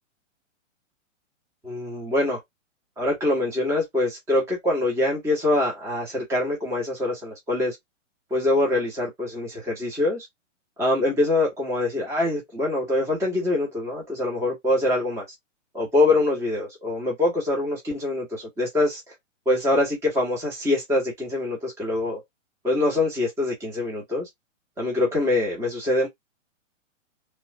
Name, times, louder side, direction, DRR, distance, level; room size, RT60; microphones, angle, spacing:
voice 1, 1.6-2.4 3.0-7.8 8.3-10.3 10.8-15.2 15.7-19.1 19.5-22.2 22.6-24.3 24.8-26.1, left 2 dB, 5° right, 0.9 m, -24 dB
3.1 x 2.4 x 3.0 m
hypercardioid pair, 130°, 38 cm